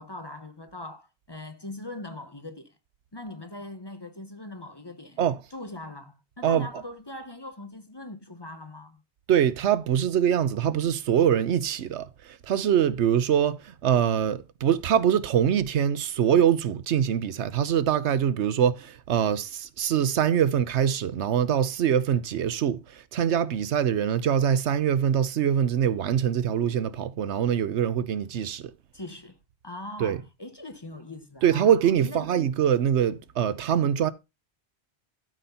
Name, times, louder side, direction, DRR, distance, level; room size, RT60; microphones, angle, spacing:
voice 1, 0.0-2.8 3.1-5.2 5.5-9.0 28.9-29.4 29.6-31.7 32.0-32.3, left 1 dB, 25° left, 0.9 m, -41 dB
voice 2, 9.3-28.7 30.0-30.2 31.4-34.1, right 9 dB, 80° right, 1.0 m, -24 dB
12.5 x 4.3 x 5.5 m
omnidirectional pair, 1.1 m